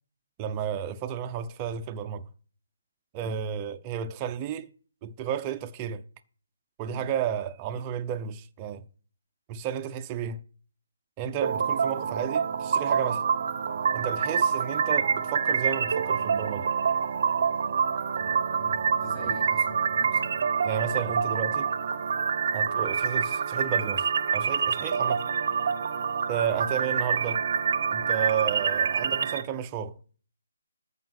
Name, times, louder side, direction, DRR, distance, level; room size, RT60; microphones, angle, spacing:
voice 1, 0.4-2.3 3.1-4.7 5.0-6.0 6.8-8.8 9.5-10.4 11.2-13.2 13.9-16.7 20.6-21.7 22.5-25.2 26.3-27.4 27.9-30.0, right 8 dB, 20° right, 0.8 m, -32 dB
sound 1, 11.4-29.4, right 6 dB, 45° right, 0.9 m, -26 dB
voice 2, 18.6-20.4 26.5-26.7, left 1 dB, 15° left, 3.2 m, -44 dB
14.0 x 5.8 x 7.6 m
hypercardioid pair, 165°, 0 cm